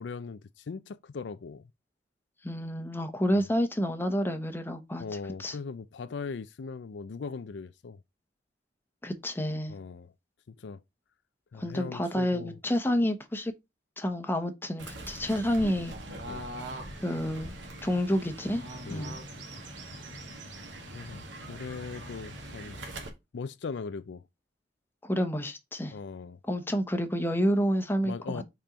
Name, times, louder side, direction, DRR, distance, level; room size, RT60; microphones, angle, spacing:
voice 1, 0.0-1.7 3.3-3.4 5.0-8.0 9.7-10.1 10.5-10.8 11.5-12.6 16.2-16.5 18.9-19.2 20.9-22.8 23.3-24.2 25.9-26.4 28.1-28.4, left 5 dB, 75° left, 0.4 m, -39 dB
voice 2, 2.4-5.0 5.4-5.5 9.0-9.7 11.5-13.5 14.0-16.0 17.0-17.5 17.8-18.6 18.9-19.2 25.0-26.0 26.5-28.4, equal, 10° left, 1.0 m, -29 dB
Fowl / Bird, 14.8-23.1, right 1 dB, 85° right, 2.0 m, -42 dB
5.5 x 4.4 x 5.0 m
head